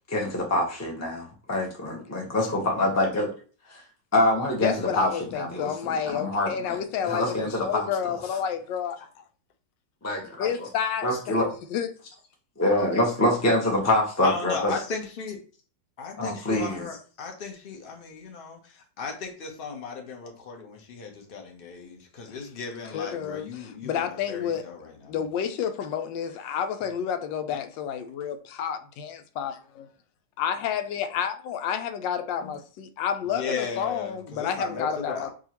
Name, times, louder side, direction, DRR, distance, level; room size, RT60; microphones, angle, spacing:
voice 1, 0.1-3.3 3.7-3.8 4.1-8.2 10.0-10.7 11.0-11.5 12.6-14.7 16.2-16.8 32.4-32.5, left 1 dB, 15° left, 0.6 m, -26 dB
voice 2, 4.6-9.0 10.4-11.4 11.7-11.9 22.9-24.6 25.1-29.9 30.4-35.3, left 8 dB, 85° left, 1.3 m, -30 dB
voice 3, 14.2-15.4 16.0-25.2 33.2-35.3, left 5 dB, 40° left, 0.8 m, -36 dB
4.8 x 2.8 x 2.9 m
omnidirectional pair, 1.9 m